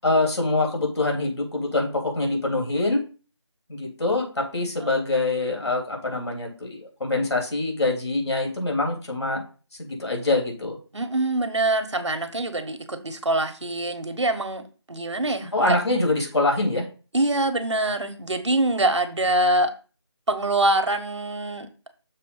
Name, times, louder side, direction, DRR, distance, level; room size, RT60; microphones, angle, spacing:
voice 1, 0.0-3.0 3.7-9.4 9.8-10.8 15.5-16.9, left 2 dB, 65° left, 1 dB, 3.4 m, -24 dB
voice 2, 10.9-14.6 14.9-15.8 17.1-19.7 20.3-21.7, right 2 dB, 75° right, 9 dB, 1.2 m, -24 dB
6.8 x 4.2 x 5.4 m, 0.36 s
figure-of-eight pair, 170°, 15 cm